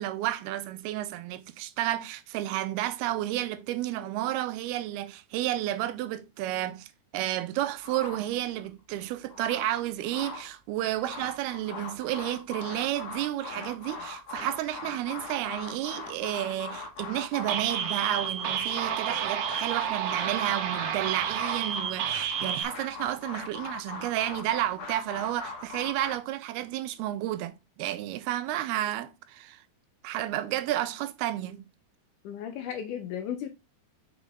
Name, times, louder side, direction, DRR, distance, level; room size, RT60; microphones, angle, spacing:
voice 1, 0.0-6.9 7.1-29.6 30.0-31.6, right 14 dB, 90° right, 2.6 m, -31 dB
sound 1, 7.8-8.7 9.1-10.5 10.8-26.2, left 3 dB, 55° left, 2.1 m, -40 dB
sound 2, 17.5-22.6, right 9 dB, 75° right, 2.4 m, -30 dB
voice 2, 32.2-33.5, left 9 dB, 85° left, 1.8 m, -35 dB
6.3 x 5.1 x 3.5 m
omnidirectional pair, 4.5 m